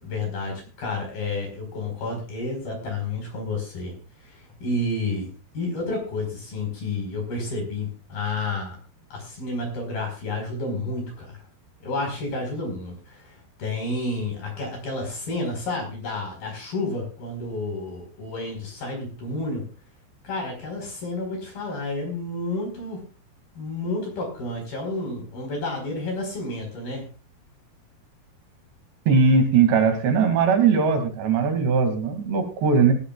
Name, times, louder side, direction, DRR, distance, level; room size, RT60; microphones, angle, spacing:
voice 1, 0.0-3.9 4.2-5.3 5.5-8.8 9.1-11.4 11.8-19.7 20.2-23.0 23.5-27.1, left 2 dB, 60° left, 1 dB, 6.7 m, -30 dB
voice 2, 29.1-32.9, right 5 dB, 80° right, 6 dB, 4.8 m, -19 dB
18.0 x 17.5 x 2.5 m, 0.37 s
omnidirectional pair, 4.8 m